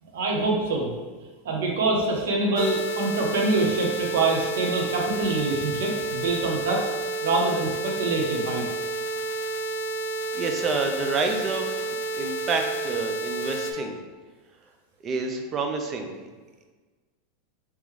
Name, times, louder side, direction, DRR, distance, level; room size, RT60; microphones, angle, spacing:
voice 1, 0.1-0.9 1.4-6.9 7.2-8.6, right 3 dB, 85° right, 0 dB, 0.8 m, -25 dB
sound 1, 2.6-13.7, right 2 dB, 75° left, 0.5 m, -30 dB
voice 2, 10.3-14.0 15.0-16.3, right 4 dB, 30° right, 4 dB, 0.5 m, -29 dB
3.7 x 3.0 x 3.1 m, 1.3 s
supercardioid pair, 135°, 0 cm